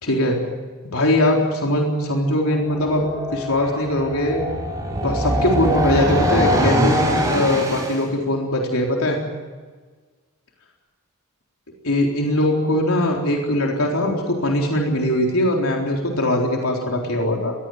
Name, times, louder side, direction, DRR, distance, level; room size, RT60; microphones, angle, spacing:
voice 1, 0.0-0.4 0.8-3.1 3.3-4.4 5.0-7.0 7.2-9.2 11.8-17.5, left 1 dB, 75° left, 0 dB, 4.0 m, -21 dB
sound 1, 2.6-8.0, equal, 15° right, 6.0 m, -22 dB
21.0 x 17.0 x 9.5 m, 1.4 s
head